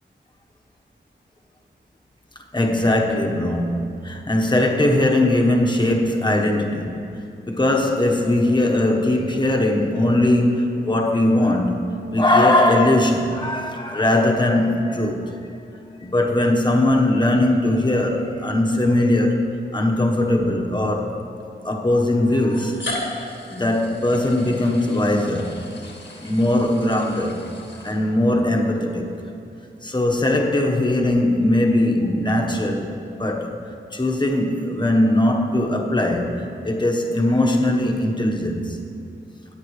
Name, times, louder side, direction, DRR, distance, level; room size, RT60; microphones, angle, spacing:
voice 1, 2.5-7.0 7.4-11.8 12.1-15.3 16.0-21.2 21.6-22.8 23.5-25.6 26.2-27.4 27.8-29.1 29.8-32.9 33.2-33.6 33.9-38.8, left 1 dB, 25° left, 0 dB, 1.3 m, -20 dB
sound 1, 20.1-20.2 21.4-21.5 22.4-28.4, left 2 dB, 70° left, 1.7 m, -36 dB
18.0 x 8.1 x 3.3 m, 2.5 s
cardioid pair, 55°, 19 cm